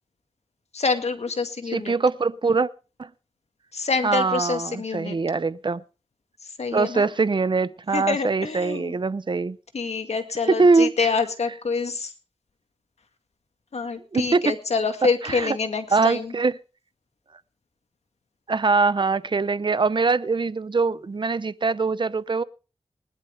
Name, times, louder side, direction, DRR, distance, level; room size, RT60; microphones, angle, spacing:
voice 1, 0.7-1.9 3.7-5.2 6.6-7.1 7.9-8.9 9.7-12.1 13.7-16.3, left 4 dB, 85° left, 7 dB, 2.1 m, -26 dB
voice 2, 1.7-2.7 3.0-3.1 4.0-5.8 6.7-9.6 10.5-11.1 14.1-14.5 15.2-15.6 15.9-16.6 18.5-22.4, right 4 dB, 50° right, 16 dB, 0.7 m, -22 dB
20.5 x 11.5 x 3.4 m, 0.33 s
wide cardioid pair, 70°, 11 cm